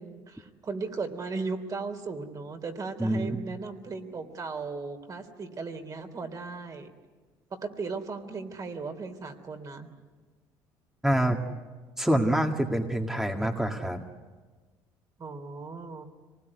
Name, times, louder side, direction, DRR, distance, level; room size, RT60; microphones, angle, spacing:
voice 1, 0.0-6.9 7.6-9.9 15.2-16.0, right 4 dB, 40° right, 6 dB, 3.5 m, -36 dB
voice 2, 3.0-3.4 11.0-11.4 12.0-14.0, right 1 dB, 5° right, 2 dB, 2.0 m, -26 dB
26.0 x 20.0 x 9.8 m, 1.4 s
supercardioid pair, 85°, 9 cm